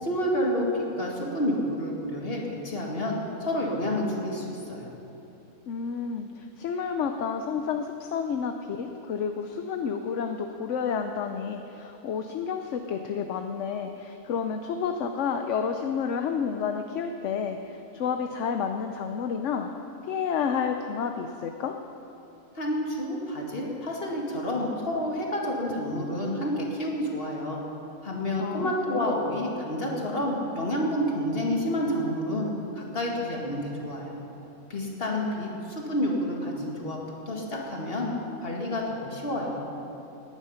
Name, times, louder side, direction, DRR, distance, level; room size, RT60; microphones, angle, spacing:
voice 1, 0.0-4.9 22.6-27.6 28.0-32.5 32.8-34.2 34.7-37.0 37.3-38.1 38.4-39.6, left 1 dB, 40° left, -1 dB, 2.2 m, -29 dB
voice 2, 5.7-19.7 20.1-21.8 28.4-29.1, left 6 dB, 60° left, 6 dB, 0.9 m, -30 dB
18.0 x 10.5 x 5.7 m, 3.0 s
omnidirectional pair, 1.5 m